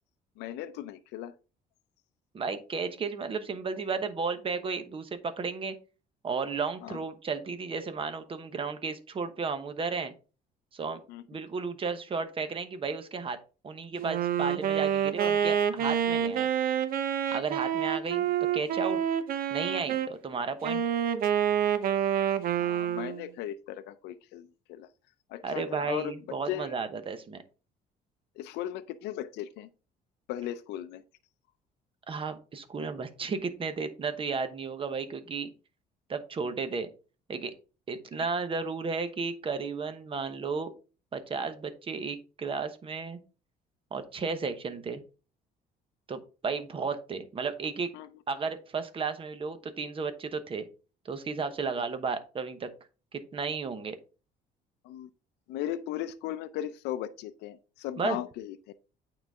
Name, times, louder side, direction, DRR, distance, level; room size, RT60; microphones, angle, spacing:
voice 1, 0.4-1.3 6.8-7.0 11.1-11.2 22.6-24.9 25.3-26.7 28.4-29.7 30.3-31.0 47.9-48.1 54.8-55.1 55.5-58.6, left 12 dB, 90° left, 0.5 m, -37 dB
voice 2, 2.3-5.7 6.2-10.1 10.7-11.0 11.3-13.4 13.6-16.5 17.3-19.0 19.5-20.8 25.4-27.4 32.1-35.5 36.1-36.9 37.3-37.5 37.9-40.7 41.1-43.2 43.9-45.0 46.1-47.9 48.3-50.6 51.0-52.7 53.1-54.0 58.0-58.2, right 5 dB, 30° right, 1.0 m, -33 dB
Wind instrument woodwind instrument, 14.0-20.1 20.6-23.3, right 9 dB, 60° right, 0.8 m, -28 dB
8.8 x 4.0 x 3.5 m
cardioid pair, 110°, 17 cm